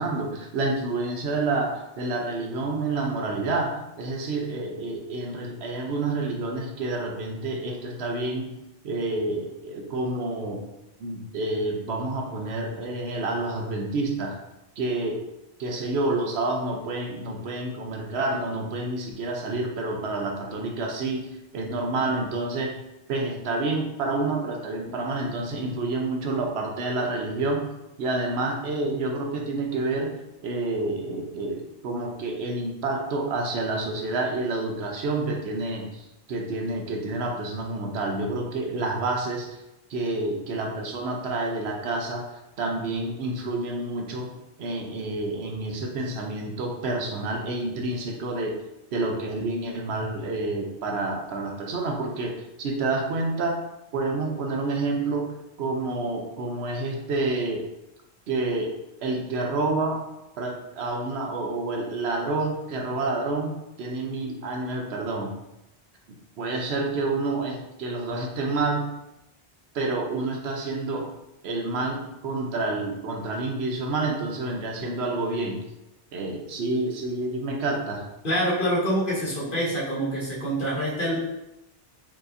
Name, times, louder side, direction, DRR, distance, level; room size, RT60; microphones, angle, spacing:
voice 1, 0.0-8.5 8.8-10.6 11.0-14.4 14.8-15.2 15.6-21.3 21.5-22.8 23.1-27.6 28.0-30.1 30.4-39.6 39.9-44.3 44.6-48.5 48.9-53.6 53.9-55.3 55.6-57.7 58.3-60.0 60.4-65.4 66.4-68.9 69.7-71.1 71.4-75.6 76.1-78.1, right 2 dB, 80° right, 2 dB, 0.9 m, -28 dB
voice 2, 78.2-81.2, equal, 55° left, -8 dB, 1.7 m, -26 dB
4.5 x 3.0 x 2.5 m, 0.91 s
omnidirectional pair, 1.1 m